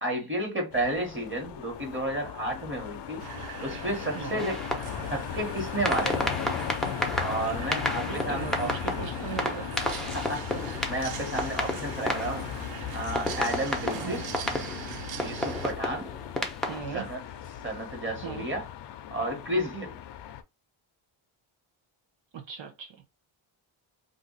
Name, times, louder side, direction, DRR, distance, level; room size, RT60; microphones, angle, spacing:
voice 1, 0.0-3.2 3.6-4.5 5.1-6.4 7.2-8.7 10.3-10.4 10.9-12.5 12.9-14.3 15.2-16.1 16.9-17.2 17.6-18.7 19.1-20.0, right 1 dB, 25° right, 1.5 m, -32 dB
sound 1, 0.7-20.4, left 10 dB, 60° left, 0.5 m, -37 dB
sound 2, 3.2-15.7, right 10 dB, 90° right, 0.6 m, -42 dB
voice 2, 4.1-4.5 8.1-9.7 13.9-14.2 16.7-17.0 18.2-18.5 22.3-23.0, right 7 dB, 65° right, 0.8 m, -38 dB
sound 3, 4.4-5.2 5.9-12.7 13.2-16.8, left 1 dB, ahead, 0.7 m, -32 dB
2.6 x 2.5 x 3.9 m
cardioid pair, 90°, 49 cm